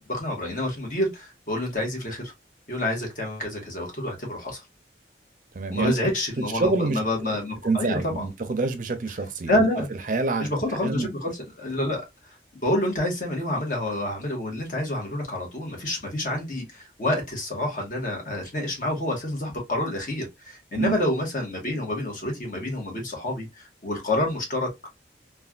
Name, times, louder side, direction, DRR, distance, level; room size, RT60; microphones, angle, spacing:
voice 1, 0.1-2.3 2.7-4.6 5.7-8.3 9.5-9.9 10.4-12.0 12.6-24.7, left 1 dB, 50° left, 1.1 m, -28 dB
voice 2, 5.6-6.0 6.5-7.0 7.6-9.7 10.1-10.5 10.8-11.1 20.8-20.9, right 3 dB, 50° right, 0.5 m, -26 dB
3.2 x 2.2 x 2.3 m
head